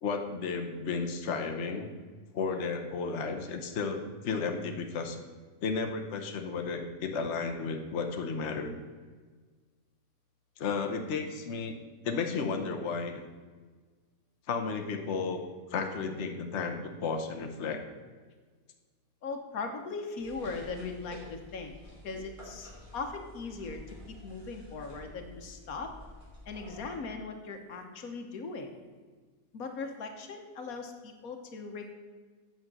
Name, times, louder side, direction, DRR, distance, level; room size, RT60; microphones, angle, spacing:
voice 1, 0.0-1.9 2.3-5.2 5.6-8.8 10.6-11.8 12.0-13.2 14.5-15.4 15.7-17.8, left 4 dB, 55° left, 4 dB, 1.2 m, -33 dB
voice 2, 19.2-21.7 22.0-23.8 24.1-25.9 26.5-28.7 29.5-31.9, left 4 dB, 85° left, 5 dB, 1.5 m, -39 dB
sound 1, 20.2-27.0, left 1 dB, 20° right, 2.9 m, -50 dB
8.5 x 5.9 x 7.6 m, 1.4 s
omnidirectional pair, 1.5 m